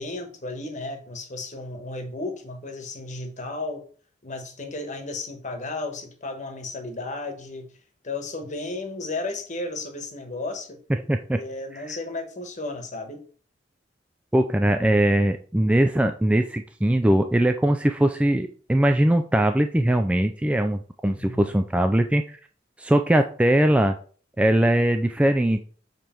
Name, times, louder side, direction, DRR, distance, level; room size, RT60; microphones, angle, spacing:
voice 1, 0.0-3.8 4.2-7.7 8.0-10.8 11.3-13.2 21.1-21.5, left 2 dB, 40° left, 5 dB, 1.2 m, -34 dB
voice 2, 11.1-11.4 11.7-11.8 14.3-22.4 22.8-24.0 24.4-25.6, right 1 dB, 5° right, 6 dB, 0.3 m, -21 dB
7.3 x 3.2 x 4.4 m, 0.42 s
head